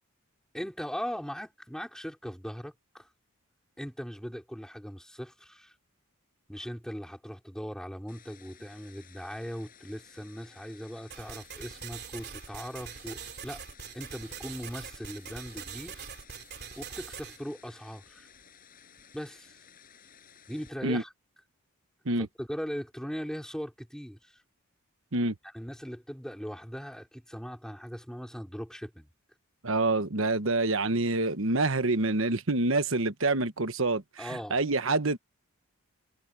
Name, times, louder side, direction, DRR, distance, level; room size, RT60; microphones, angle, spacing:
voice 1, 0.5-3.1 3.8-5.7 6.5-13.6 13.9-16.0 16.8-18.3 19.1-19.6 20.5-21.1 22.2-24.4 25.4-29.1 34.2-34.6, equal, 5° left, 5.1 m, -39 dB
sound 1, 8.1-20.7, left 7 dB, 40° left, 7.5 m, -56 dB
sound 2, 11.1-17.4, right 7 dB, 50° right, 3.3 m, -43 dB
voice 2, 29.6-34.2 34.5-35.2, right 2 dB, 65° right, 1.3 m, -27 dB
head